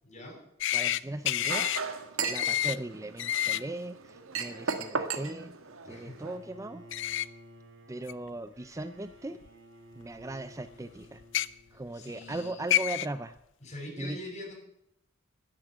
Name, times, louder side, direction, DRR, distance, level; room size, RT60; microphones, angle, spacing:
voice 1, 0.0-0.4 5.9-6.2 11.9-12.8 13.6-14.5, left 1 dB, 35° left, 0 dB, 6.7 m, -43 dB
sound 1, 0.6-1.0 1.3-1.8 2.3-2.8 3.2-3.6 6.9-7.3 8.1-8.2 9.4-9.5 11.2-11.5 12.3-12.4 12.7-13.1, left 12 dB, 60° left, 0.5 m, -28 dB
voice 2, 0.7-1.7 2.2-5.6 5.8-6.9 7.9-9.4 10.0-11.2 11.7-13.4 14.0-14.2, right 2 dB, 15° right, 11 dB, 0.5 m, -38 dB
Chink clink, 1.4-6.4, right 5 dB, 80° right, 1.6 m, -36 dB
Bowed string instrument, 6.2-12.3, equal, 60° right, 2.4 m, -54 dB
11.5 x 11.0 x 9.4 m, 0.79 s
head